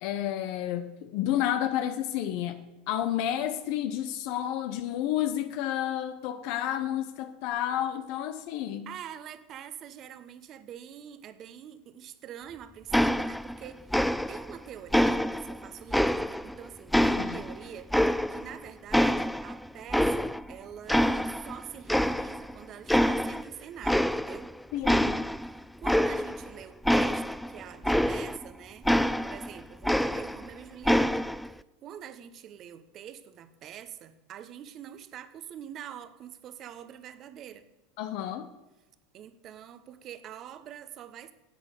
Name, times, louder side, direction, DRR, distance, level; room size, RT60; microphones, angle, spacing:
voice 1, 0.0-2.6 2.9-8.9 17.0-17.4 24.7-25.2 38.0-38.5, left 11 dB, 60° left, 9 dB, 0.9 m, -31 dB
voice 2, 8.9-17.9 18.3-24.5 25.8-28.9 29.2-31.3 31.8-37.7 39.1-41.3, right 10 dB, 40° right, 12 dB, 1.0 m, -45 dB
sound 1, 12.9-13.6 13.9-14.5 14.9-16.5 16.9-18.6 18.9-20.5 20.9-21.6 21.9-22.5 22.9-23.5 23.8-24.5 24.8-28.5 28.9-30.5 30.8-31.5, equal, ahead, 0.4 m, -26 dB
11.5 x 8.2 x 6.7 m, 1.1 s
supercardioid pair, 130°, 0 cm